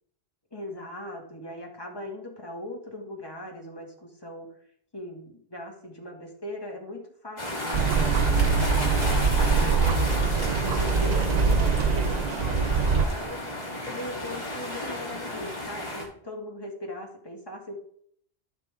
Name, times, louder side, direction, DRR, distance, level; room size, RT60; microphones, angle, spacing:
voice 1, 0.5-4.6 4.9-17.7, left 1 dB, 20° left, 0 dB, 2.1 m, -40 dB
sound 1, 7.4-16.0, left 1 dB, 40° left, 2.8 m, -33 dB
sound 2, 7.7-13.1, right 5 dB, 50° right, 0.5 m, -23 dB
14.0 x 5.8 x 3.6 m, 0.64 s
omnidirectional pair, 1.1 m